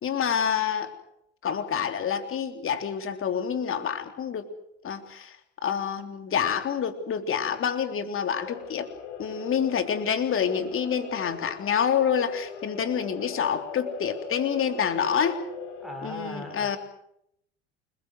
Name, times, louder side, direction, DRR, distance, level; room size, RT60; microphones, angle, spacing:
voice 1, 0.0-0.9 1.4-4.5 4.8-5.4 5.6-8.9 9.2-15.4 16.0-16.8, left 7 dB, 35° left, 7 dB, 3.5 m, -27 dB
sound 1, 8.3-15.9, left 5 dB, 70° left, 7.6 m, -40 dB
voice 2, 15.8-16.8, equal, ahead, 2 dB, 6.5 m, -38 dB
29.0 x 22.0 x 6.3 m, 0.75 s
figure-of-eight pair, 65°, 35 cm